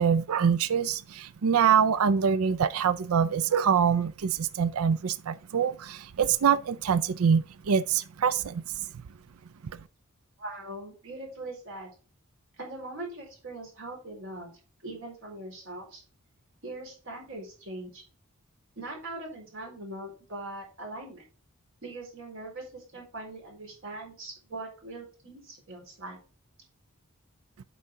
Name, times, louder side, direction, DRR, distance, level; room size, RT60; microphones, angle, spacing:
voice 1, 0.0-8.6, right 7 dB, 85° right, 0.4 m, -25 dB
voice 2, 10.4-11.9 12.6-14.5 14.8-16.0 16.6-18.0 18.8-21.2 21.8-26.2, right 2 dB, 65° right, 4.3 m, -41 dB
8.3 x 5.5 x 3.7 m
head